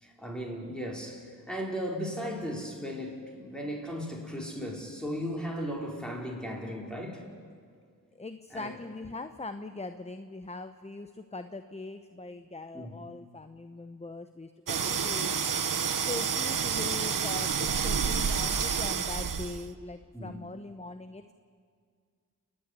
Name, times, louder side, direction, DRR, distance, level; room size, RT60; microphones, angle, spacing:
voice 1, 0.0-7.2 8.5-8.8 12.7-12.9 20.1-20.4, equal, ahead, -1 dB, 4.8 m, -36 dB
voice 2, 8.1-15.7 16.1-21.3, left 3 dB, 20° left, 10 dB, 0.8 m, -41 dB
sound 1, 14.7-19.7, right 6 dB, 65° right, 1.0 m, -29 dB
29.0 x 9.8 x 10.0 m, 2.1 s
cardioid pair, 55°, 35 cm